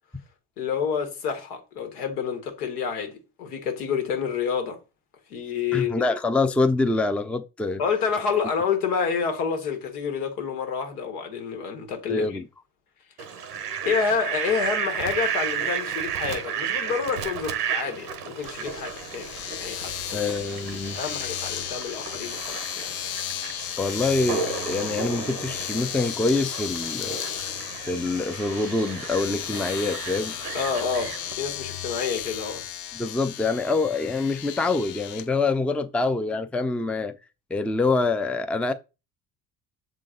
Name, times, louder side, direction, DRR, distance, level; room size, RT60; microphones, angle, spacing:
voice 1, 0.6-4.8 5.3-6.0 7.8-12.4 13.4-13.5 13.8-20.3 20.9-22.9 30.5-32.7, left 6 dB, 75° left, 1.5 m, -28 dB
voice 2, 5.7-7.8 12.1-12.5 20.1-21.0 23.8-27.2 27.8-30.3 32.9-37.1 37.5-38.7, left 3 dB, 5° left, 0.5 m, -25 dB
Fowl, 13.2-31.3, right 7 dB, 90° right, 0.9 m, -33 dB
Domestic sounds home sounds, 18.4-35.3, left 11 dB, 50° left, 0.7 m, -35 dB
6.7 x 3.8 x 3.8 m
hypercardioid pair, 60°, 45 cm